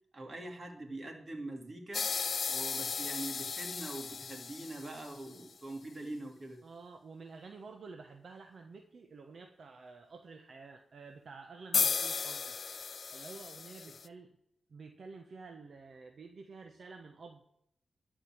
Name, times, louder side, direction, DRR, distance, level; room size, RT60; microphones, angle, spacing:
voice 1, 0.1-2.1 2.5-6.6, right 2 dB, 45° right, 2 dB, 3.0 m, -43 dB
sound 1, 1.9-5.4 11.7-14.1, left 5 dB, 65° left, 0.4 m, -35 dB
voice 2, 6.6-12.6 13.1-14.3 14.7-17.4, right 4 dB, 65° right, 4 dB, 1.1 m, -50 dB
13.0 x 5.2 x 9.2 m, 0.75 s
cardioid pair, 70°, 0 cm